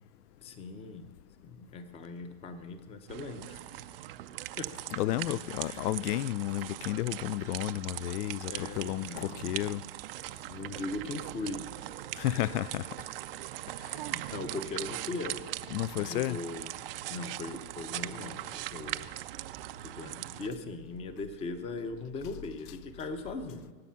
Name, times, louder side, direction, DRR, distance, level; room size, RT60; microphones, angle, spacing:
voice 1, 0.4-1.1 1.4-3.6 4.6-4.7 5.3-5.8 8.5-9.5 10.5-12.0 14.1-15.4 15.9-16.7 17.1-19.1 19.8-23.7, left 3 dB, 15° left, 0.7 m, -39 dB
sound 1, 3.1-20.5, right 15 dB, 40° right, 0.4 m, -40 dB
voice 2, 4.9-9.8 12.1-12.9 15.7-16.4, left 14 dB, 85° left, 0.6 m, -32 dB
23.0 x 9.7 x 5.7 m
supercardioid pair, 160°, 45 cm